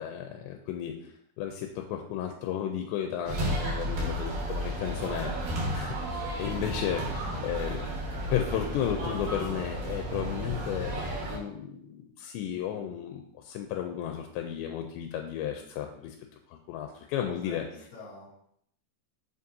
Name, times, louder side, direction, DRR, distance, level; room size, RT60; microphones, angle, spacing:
voice 1, 0.0-7.2 7.4-7.8 8.3-16.2 16.5-17.6, left 9 dB, 85° left, 3 dB, 2.8 m, -34 dB
sound 1, 3.2-11.4, right 1 dB, 60° right, 2.7 m, -33 dB
voice 2, 6.5-7.6 17.4-18.4, left 2 dB, 45° left, -5 dB, 3.1 m, -47 dB
7.6 x 5.3 x 2.7 m, 0.69 s
omnidirectional pair, 5.1 m